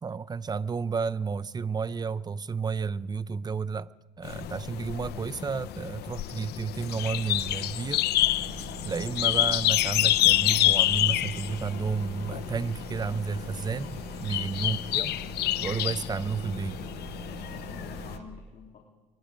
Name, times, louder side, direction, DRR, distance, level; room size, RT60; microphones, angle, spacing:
voice 1, 0.0-3.9 4.2-8.1 8.8-15.1 15.6-16.8, right 5 dB, 25° right, 0.6 m, -31 dB
sound 1, 4.2-18.2, left 15 dB, 75° left, 0.7 m, -28 dB
sound 2, 8.2-18.2, right 3 dB, 45° right, 5.5 m, -42 dB
voice 2, 14.6-15.1 17.3-18.8, left 6 dB, 45° left, 3.4 m, -49 dB
24.5 x 22.0 x 5.2 m
cardioid pair, 110°, 17 cm